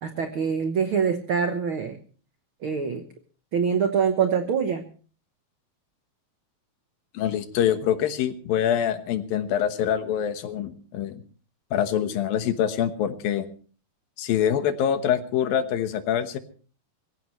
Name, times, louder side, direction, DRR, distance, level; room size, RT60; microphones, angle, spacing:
voice 1, 0.0-2.0 2.6-3.0 3.5-4.8, right 6 dB, 80° right, 7 dB, 1.1 m, -24 dB
voice 2, 7.1-11.2 11.7-13.5 14.2-16.4, left 9 dB, 80° left, 9 dB, 3.0 m, -25 dB
23.5 x 15.5 x 3.1 m, 0.40 s
omnidirectional pair, 4.1 m